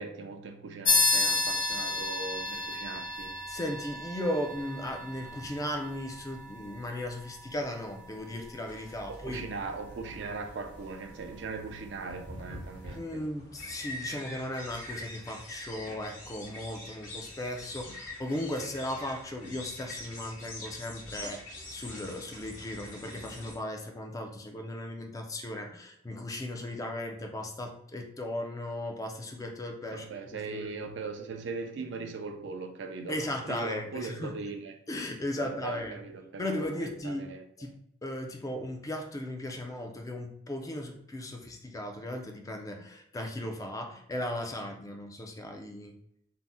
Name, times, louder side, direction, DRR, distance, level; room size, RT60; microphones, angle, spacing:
voice 1, 0.0-3.4 9.1-13.3 29.9-34.8 35.4-37.4, right 4 dB, 85° right, 6 dB, 0.4 m, -39 dB
sound 1, 0.8-10.8, left 3 dB, 80° left, 0.6 m, -33 dB
voice 2, 3.5-9.4 13.0-30.7 33.1-34.3 34.9-36.0 36.4-37.2 37.6-37.8 38.0-46.0, left 1 dB, 20° left, 3 dB, 0.3 m, -36 dB
sound 2, 8.7-23.6, left 1 dB, 50° left, 1.0 m, -45 dB
2.6 x 2.0 x 3.4 m, 0.74 s
head